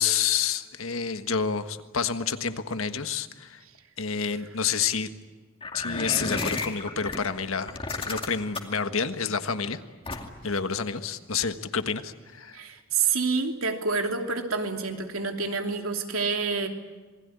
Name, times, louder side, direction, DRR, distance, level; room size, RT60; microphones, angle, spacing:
voice 1, 0.0-3.6 4.0-5.1 5.7-9.8 10.4-12.6, left 6 dB, 80° left, 9 dB, 1.5 m, -29 dB
sound 1, 5.6-7.2 7.7-8.8 10.1-10.5, left 3 dB, 25° left, 2.4 m, -32 dB
voice 2, 12.5-16.7, right 4 dB, 85° right, 4 dB, 2.9 m, -28 dB
27.0 x 20.5 x 9.7 m, 1.4 s
head